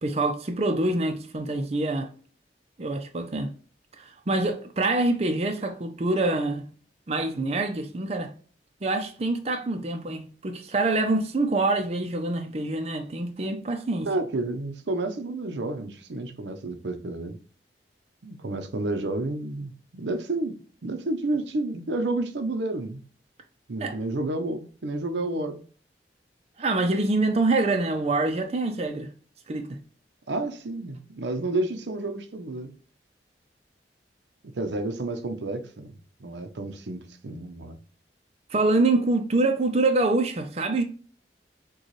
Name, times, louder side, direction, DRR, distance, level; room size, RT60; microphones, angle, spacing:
voice 1, 0.0-2.1 2.8-3.5 4.0-6.7 7.1-8.3 8.8-14.1 23.8-24.0 26.6-29.1 29.5-29.8 38.5-40.8, right 2 dB, 35° right, 0.5 m, -25 dB
voice 2, 14.1-17.4 18.2-20.5 20.8-23.0 23.7-25.6 30.3-32.7 34.4-35.9 36.2-37.8, right 2 dB, 85° right, 0.6 m, -30 dB
6.3 x 2.3 x 3.1 m
head